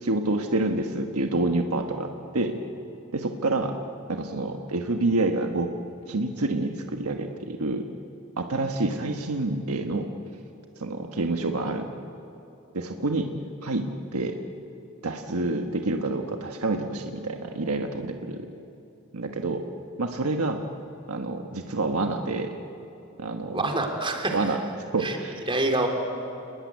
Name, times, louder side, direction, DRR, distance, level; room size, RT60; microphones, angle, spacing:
voice 1, 0.0-2.6 3.1-3.7 4.1-5.7 6.1-7.9 8.4-10.1 10.8-11.9 12.7-13.3 13.6-14.4 15.0-18.5 19.1-19.6 20.0-20.6 21.1-22.6 23.2-23.6 24.3-24.6 24.9-25.4, right 2 dB, 90° right, 4 dB, 1.4 m, -28 dB
voice 2, 23.5-24.4 25.0-25.2 25.5-25.9, right 2 dB, 25° right, 3 dB, 3.1 m, -26 dB
29.0 x 21.0 x 9.5 m, 2.9 s
head